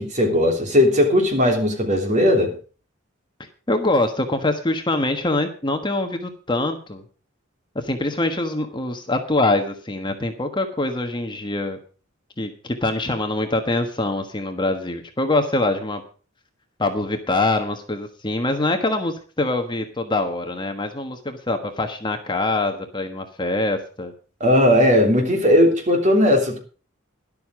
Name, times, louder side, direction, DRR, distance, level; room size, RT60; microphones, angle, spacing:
voice 1, 0.0-2.5 24.4-26.6, left 1 dB, 35° right, 3 dB, 3.2 m, -17 dB
voice 2, 3.7-7.0 7.7-11.8 12.4-16.0 16.8-24.1, left 2 dB, 25° left, 6 dB, 1.3 m, -24 dB
12.5 x 11.5 x 5.0 m, 0.37 s
head